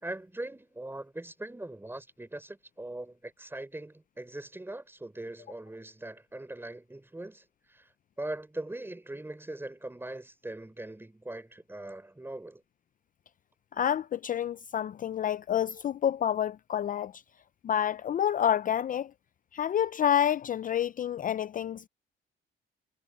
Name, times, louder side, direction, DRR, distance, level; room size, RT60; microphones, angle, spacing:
voice 1, 0.0-7.9 8.2-12.6, right 1 dB, 10° right, 5.0 m, -41 dB
voice 2, 13.7-17.2 17.6-19.1 19.5-21.9, left 9 dB, 45° left, 0.4 m, -28 dB
cardioid pair, 90°, 20 cm